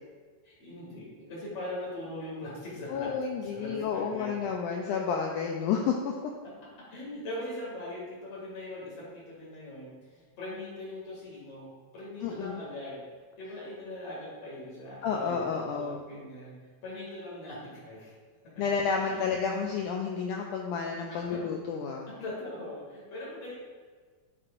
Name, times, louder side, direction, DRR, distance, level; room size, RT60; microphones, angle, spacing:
voice 1, 0.4-3.1 3.4-4.3 6.9-13.0 13.4-16.5 16.8-18.1 18.9-19.2 21.1-21.5 22.1-23.6, left 1 dB, 50° left, -6 dB, 2.9 m, -41 dB
voice 2, 2.9-6.1 12.2-12.6 15.0-16.0 18.6-22.1, left 6 dB, 90° left, 1 dB, 1.8 m, -30 dB
9.1 x 5.9 x 2.5 m, 1.5 s
omnidirectional pair, 4.2 m